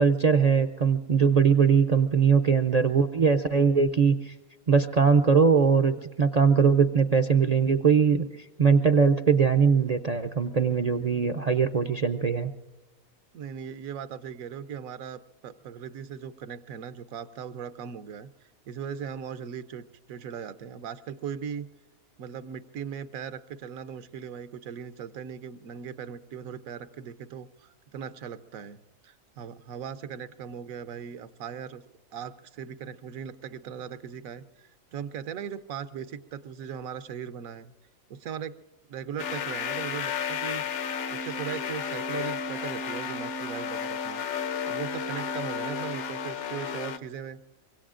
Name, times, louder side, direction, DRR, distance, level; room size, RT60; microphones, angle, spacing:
voice 1, 0.0-4.3 4.7-12.5, right 6 dB, 60° right, 7 dB, 0.4 m, -21 dB
voice 2, 1.4-1.8 3.4-3.8 13.3-21.7 22.2-31.8 32.1-37.7 38.1-38.6 38.9-40.6 41.1-44.2 44.7-47.4, right 8 dB, 85° right, 12 dB, 1.1 m, -39 dB
sound 1, 39.2-47.0, left 6 dB, 65° left, 1.0 m, -32 dB
25.0 x 23.0 x 2.5 m, 1.1 s
omnidirectional pair, 1.4 m